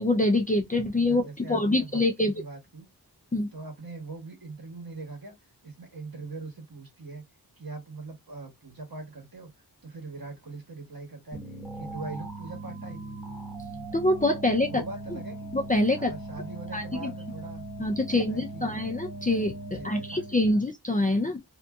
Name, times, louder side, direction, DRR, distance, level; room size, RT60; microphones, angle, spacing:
voice 1, 0.0-2.3 3.3-3.5 13.9-14.8 15.1-15.2 15.5-16.1 16.7-17.1 17.8-21.4, left 2 dB, 20° left, 0.4 m, -25 dB
voice 2, 1.1-2.9 3.5-5.3 5.6-7.2 7.6-9.5 9.8-11.4 11.7-13.0 14.7-15.5 15.9-17.6 18.1-18.8 19.7-20.7, right 3 dB, 55° right, 1.3 m, -41 dB
sound 1, 11.3-20.6, right 2 dB, 5° right, 1.0 m, -39 dB
2.6 x 2.6 x 2.3 m
wide cardioid pair, 50°, 42 cm